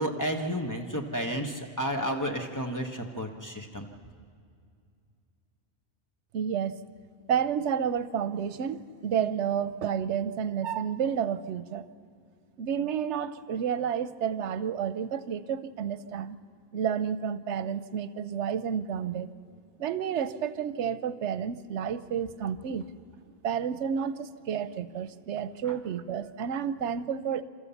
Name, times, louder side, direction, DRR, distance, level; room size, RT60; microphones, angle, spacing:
voice 1, 0.0-3.9, equal, 15° left, 3 dB, 1.3 m, -31 dB
voice 2, 6.3-6.7 7.3-11.9 12.6-16.4 16.7-19.3 19.8-22.9 23.4-27.4, right 8 dB, 90° right, 14 dB, 1.0 m, -30 dB
28.5 x 13.5 x 7.1 m, 2.3 s
omnidirectional pair, 1.2 m